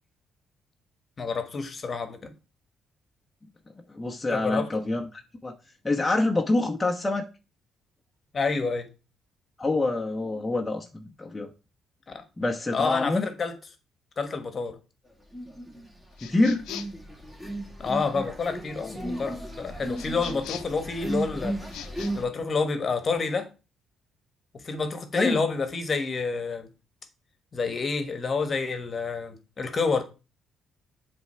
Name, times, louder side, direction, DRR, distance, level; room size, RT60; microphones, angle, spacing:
voice 1, 1.2-2.3 4.3-4.8 8.3-8.9 12.1-12.2 12.7-13.5 14.2-14.8 17.8-21.6 22.1-23.5 24.6-26.7 27.5-30.0, left 4 dB, 40° left, 1.3 m, -28 dB
voice 2, 3.9-5.1 5.4-5.5 5.8-7.2 9.6-11.5 12.4-13.2 16.2-16.7 25.1-25.4, left 2 dB, 15° left, 1.0 m, -26 dB
sound 1, 15.3-15.9 16.2-22.2, right 1 dB, 5° right, 2.2 m, -35 dB
sound 2, 16.2-17.1 19.9-20.8 21.6-22.1, left 10 dB, 85° left, 0.6 m, -41 dB
7.7 x 3.6 x 5.6 m
cardioid pair, 90°, 0 cm